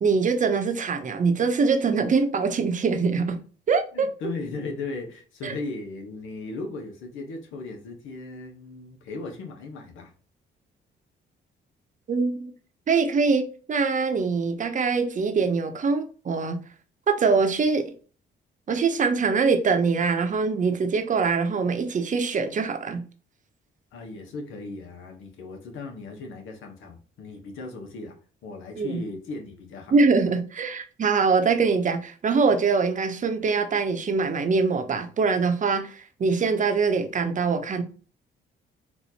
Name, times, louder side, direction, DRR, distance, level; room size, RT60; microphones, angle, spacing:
voice 1, 0.0-3.4 3.7-4.1 5.4-5.5 12.1-12.5 12.9-16.6 17.1-17.9 18.7-23.0 28.8-29.0 29.9-37.8, right 4 dB, 40° right, 0.7 m, -23 dB
voice 2, 3.9-10.1 23.9-28.2 28.4-29.9, left 3 dB, 85° left, 1.1 m, -37 dB
4.1 x 2.6 x 2.8 m
cardioid pair, 90°, 20 cm